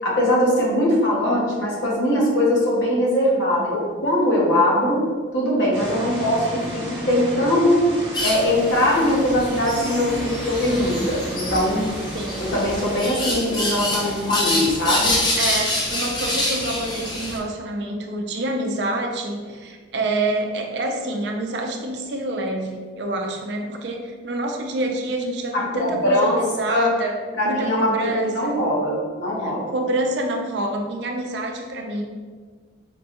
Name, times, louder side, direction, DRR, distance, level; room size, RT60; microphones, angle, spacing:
voice 1, 0.0-5.0 5.3-7.9 8.2-11.9 12.4-15.1 25.5-26.4 26.7-26.9 27.3-29.7, left 1 dB, 70° left, -4 dB, 0.9 m, -21 dB
sound 1, 5.7-13.0, right 1 dB, 25° right, 1.1 m, -33 dB
sound 2, 8.1-17.4, left 1 dB, 25° left, 0.4 m, -27 dB
voice 2, 15.4-28.6 29.4-32.0, right 1 dB, 60° right, 2 dB, 0.4 m, -27 dB
4.3 x 2.2 x 2.9 m, 1.5 s
head